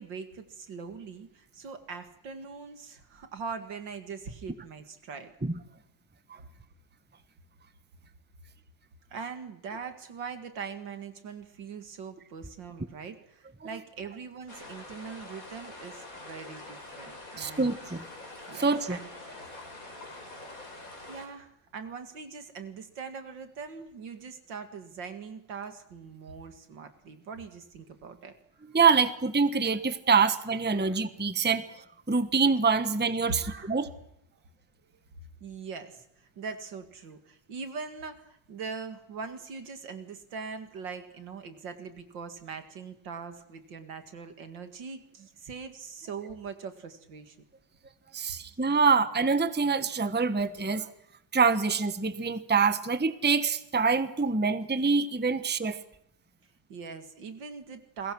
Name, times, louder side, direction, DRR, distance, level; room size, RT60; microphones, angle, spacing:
voice 1, 0.0-5.3 9.1-17.7 18.5-19.1 21.1-28.3 30.7-31.0 33.3-33.8 35.4-47.4 56.7-58.1, right 5 dB, 90° right, 9 dB, 2.8 m, -41 dB
sound 1, 14.5-21.3, left 2 dB, 50° left, 5.2 m, -45 dB
voice 2, 17.4-18.0 18.5-19.0 28.7-31.6 32.1-33.4 33.7-33.9 48.1-50.9 51.3-55.8, right 5 dB, 5° right, 12 dB, 1.0 m, -25 dB
29.0 x 21.5 x 6.2 m, 0.77 s
omnidirectional pair, 1.9 m